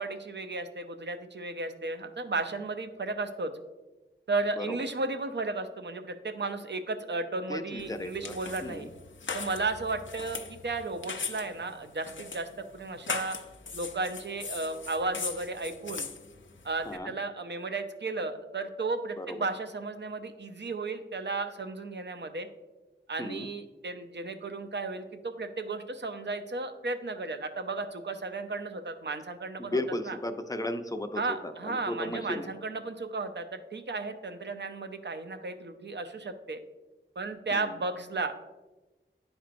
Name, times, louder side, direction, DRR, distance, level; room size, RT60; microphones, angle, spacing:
voice 1, 0.0-3.5 4.3-8.9 9.3-13.4 13.7-16.1 16.6-22.5 23.1-30.2 31.2-36.6 37.2-38.3, right 3 dB, 60° right, 8 dB, 0.6 m, -34 dB
voice 2, 7.5-8.3 8.6-8.9 16.8-17.1 19.2-19.5 23.2-23.5 29.6-32.5 37.5-37.8, left 1 dB, 15° left, 7 dB, 0.6 m, -35 dB
sound 1, 7.8-17.0, left 5 dB, 65° left, 0.5 m, -40 dB
10.0 x 4.4 x 2.5 m, 1.1 s
wide cardioid pair, 40°, 21 cm